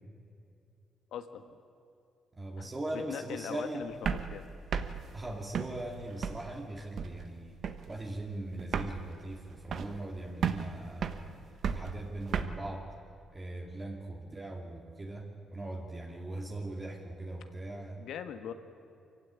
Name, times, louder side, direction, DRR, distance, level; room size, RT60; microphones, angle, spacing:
voice 1, 1.1-1.6 2.6-4.4 18.0-18.5, left 8 dB, 75° left, 9 dB, 1.5 m, -41 dB
voice 2, 2.4-4.0 5.1-7.6 7.9-11.4 11.7-12.9 13.3-18.0, right 1 dB, 25° right, 0 dB, 2.3 m, -40 dB
sound 1, 3.9-6.6 7.0-7.4 7.6-8.0 8.3-8.4 8.6-10.1 10.4-12.5, right 7 dB, 60° right, 1.2 m, -35 dB
24.0 x 16.0 x 9.9 m, 2.5 s
cardioid pair, 90°, 0 cm